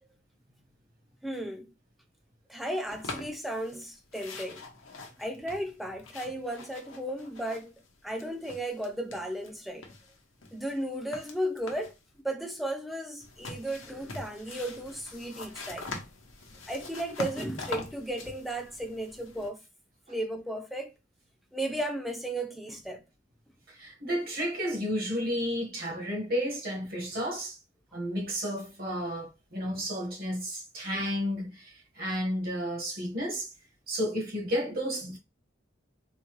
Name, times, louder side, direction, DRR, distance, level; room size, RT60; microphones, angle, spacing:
voice 1, 1.2-1.7 2.5-4.6 5.2-7.7 8.0-9.9 10.5-11.9 12.2-15.9 16.7-19.6 20.1-20.9 21.5-23.0 30.9-31.0, right 1 dB, ahead, 0.5 m, -35 dB
sound 1, 2.9-3.8 4.1-9.5 9.8-12.0 13.2-19.5, left 3 dB, 85° left, 0.9 m, -43 dB
voice 2, 23.7-27.6 27.9-33.5 33.9-35.2, equal, 50° right, 1.3 m, -32 dB
3.8 x 2.3 x 3.1 m
head